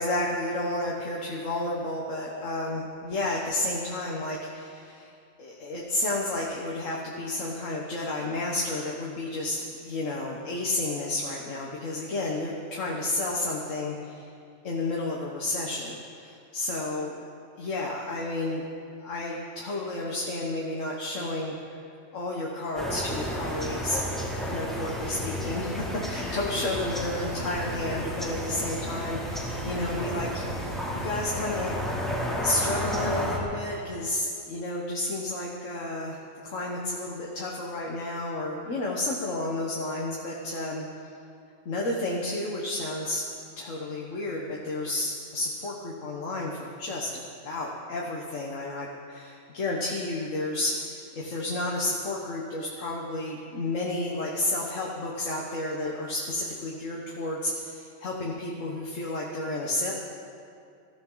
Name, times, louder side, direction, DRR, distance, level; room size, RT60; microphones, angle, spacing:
voice 1, 0.0-5.1 5.4-14.3 14.6-17.1 17.6-18.6 19.0-21.8 22.1-24.0 24.5-32.1 32.4-36.2 36.4-41.1 41.6-43.2 43.6-47.1 47.4-59.9, left 2 dB, 70° left, -2 dB, 1.7 m, -31 dB
sound 1, 22.8-33.4, equal, ahead, 2.3 m, -32 dB
21.5 x 14.5 x 3.9 m, 2.4 s
omnidirectional pair, 1.4 m